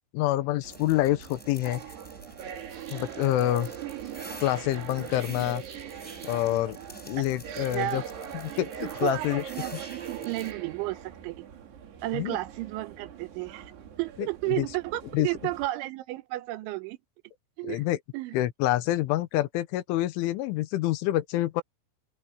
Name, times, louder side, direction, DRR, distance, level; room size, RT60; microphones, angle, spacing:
voice 1, 0.1-1.8 2.9-3.7 4.4-5.6 6.2-6.8 7.1-8.0 8.4-9.4 12.1-12.4 14.2-14.3 14.6-14.7 15.1-15.3 17.6-18.0 18.3-21.6, left 15 dB, 85° left, 3.5 m, -27 dB
sound 1, 0.6-10.5, equal, ahead, 4.1 m, -50 dB
sound 2, 0.6-15.7, right 9 dB, 60° right, 4.7 m, -41 dB
voice 2, 7.2-8.1 8.8-11.5 12.0-13.7 14.0-17.0 17.6-17.8 18.1-18.3, right 18 dB, 80° right, 3.2 m, -33 dB
open air
omnidirectional pair, 5.5 m